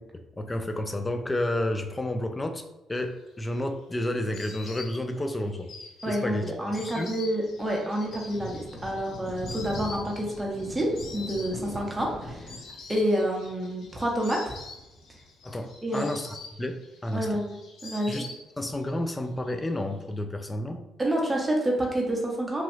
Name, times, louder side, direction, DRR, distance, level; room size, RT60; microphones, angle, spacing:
voice 1, 0.4-5.7 6.0-7.1 15.4-16.8 17.0-17.4 18.1-18.3 18.6-20.8, left 1 dB, 20° left, 7 dB, 0.4 m, -31 dB
Insect, 3.2-18.9 19.1-20.0, left 4 dB, 75° left, 0.6 m, -46 dB
voice 2, 6.0-12.5 12.9-14.5 15.8-16.1 17.1-17.6 17.8-18.3 21.0-22.6, right 1 dB, 15° right, -1 dB, 0.9 m, -28 dB
Thunder, 7.3-16.1, left 1 dB, 35° left, 0.9 m, -42 dB
3.0 x 2.3 x 3.1 m, 0.95 s
cardioid pair, 90°, 0 cm